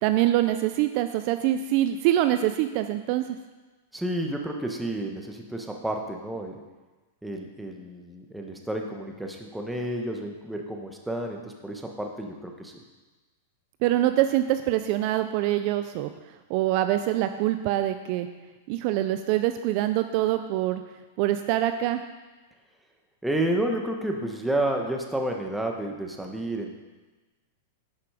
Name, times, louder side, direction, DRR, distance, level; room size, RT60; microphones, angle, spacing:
voice 1, 0.0-3.3 13.8-16.1 16.5-18.3 18.7-20.8 21.2-22.0, right 13 dB, 50° right, 9 dB, 0.5 m, -24 dB
voice 2, 3.9-6.6 7.2-12.7 23.2-26.8, right 1 dB, 5° right, 2 dB, 1.2 m, -30 dB
10.5 x 5.9 x 4.9 m, 1.2 s
hypercardioid pair, 130°, 0 cm